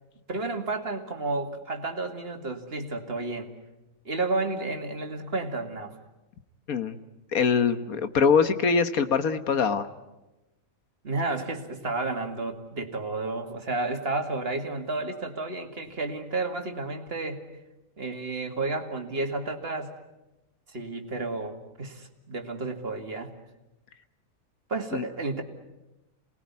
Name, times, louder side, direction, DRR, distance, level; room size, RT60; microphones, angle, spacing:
voice 1, 0.3-3.5 4.0-6.0 11.0-17.6 18.0-19.9 20.7-23.3 24.7-25.4, right 3 dB, 45° right, 4 dB, 2.5 m, -31 dB
voice 2, 7.3-9.9 24.9-25.0, left 6 dB, 90° left, 10 dB, 1.7 m, -23 dB
28.0 x 20.0 x 9.6 m, 1.0 s
omnidirectional pair, 1.4 m